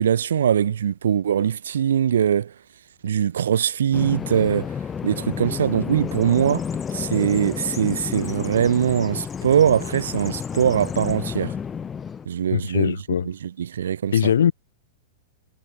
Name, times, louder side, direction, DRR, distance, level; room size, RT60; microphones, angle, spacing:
voice 1, 0.0-2.5 3.0-4.7 5.0-6.7 6.9-11.5 12.3-13.0 13.2-14.3, right 9 dB, 85° right, 4.0 m, -22 dB
Bird vocalization bird call bird song, 3.9-12.2, left 7 dB, 20° left, 1.8 m, -31 dB
voice 2, 12.5-13.3 14.1-14.5, left 9 dB, 85° left, 3.9 m, -20 dB
hypercardioid pair, 135°, 0 cm